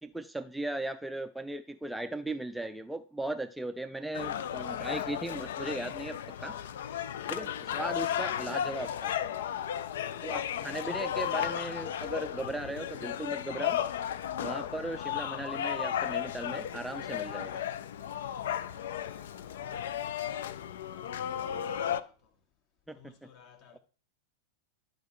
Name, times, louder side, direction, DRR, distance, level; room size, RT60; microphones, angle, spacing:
voice 1, 0.0-6.6 7.3-9.1 10.2-13.8 14.4-17.6 22.9-23.1 23.7-23.8, right 1 dB, 5° right, 0.4 m, -37 dB
sound 1, 4.1-22.0, left 10 dB, 60° left, 0.5 m, -34 dB
sound 2, 9.4-9.8 11.2-13.0 14.4-16.2 17.6-19.4, equal, 85° left, 2.7 m, -60 dB
voice 2, 19.5-22.5 22.9-23.8, left 8 dB, 45° left, 1.7 m, -59 dB
11.5 x 5.1 x 4.3 m
figure-of-eight pair, 90°, 0 cm